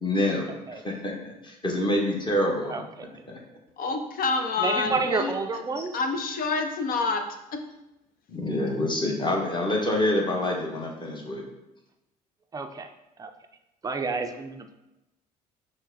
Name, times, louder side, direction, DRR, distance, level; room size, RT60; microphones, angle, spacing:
voice 1, 0.0-0.4 0.7-2.8 3.3-3.4 8.3-11.4, left 1 dB, 25° left, 0 dB, 1.2 m, -26 dB
voice 2, 2.7-3.1 4.6-6.0 12.5-12.9 13.2-13.3 13.8-14.8, right 4 dB, 20° right, 6 dB, 0.5 m, -29 dB
voice 3, 3.8-7.6, left 4 dB, 45° left, 6 dB, 0.7 m, -28 dB
6.2 x 2.2 x 3.9 m, 0.95 s
hypercardioid pair, 60°, 20 cm